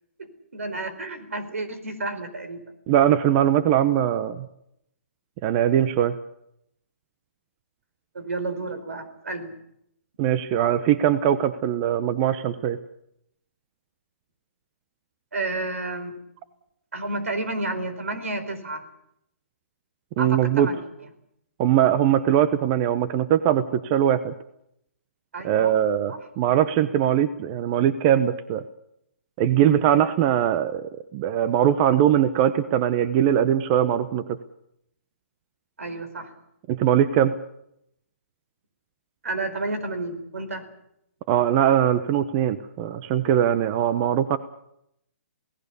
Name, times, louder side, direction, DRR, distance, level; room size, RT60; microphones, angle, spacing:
voice 1, 0.2-2.6 8.1-9.5 15.3-16.1 16.9-18.8 20.2-20.8 25.3-25.8 26.1-26.2 35.8-36.3 39.2-40.6 43.9-44.0, right 2 dB, 85° right, 11 dB, 4.4 m, -31 dB
voice 2, 2.9-4.5 5.4-6.2 10.2-12.8 20.2-20.7 21.6-24.3 25.4-28.6 29.4-34.4 36.7-37.3 41.3-44.4, right 10 dB, 35° right, 13 dB, 1.0 m, -21 dB
28.0 x 18.0 x 7.0 m, 0.77 s
hypercardioid pair, 140°, 7 cm